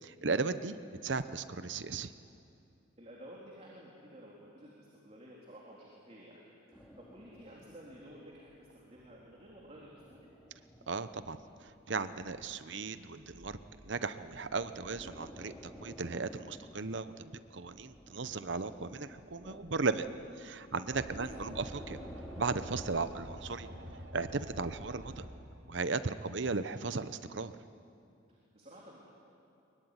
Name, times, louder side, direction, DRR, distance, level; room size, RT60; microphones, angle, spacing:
voice 1, 0.0-0.8 1.0-2.1 10.9-13.6 13.8-20.1 20.4-22.0 22.4-23.7 24.1-25.3 25.7-27.5, right 4 dB, 65° right, 12 dB, 0.9 m, -36 dB
voice 2, 3.0-6.4 6.7-10.2 20.9-21.1 26.1-26.3 28.3-29.0, equal, 30° right, -4 dB, 3.6 m, -53 dB
sound 1, 6.7-23.0, equal, 5° left, 2.4 m, -53 dB
sound 2, 20.9-25.3, equal, 80° right, 3.8 m, -47 dB
23.0 x 23.0 x 9.8 m, 2.6 s
head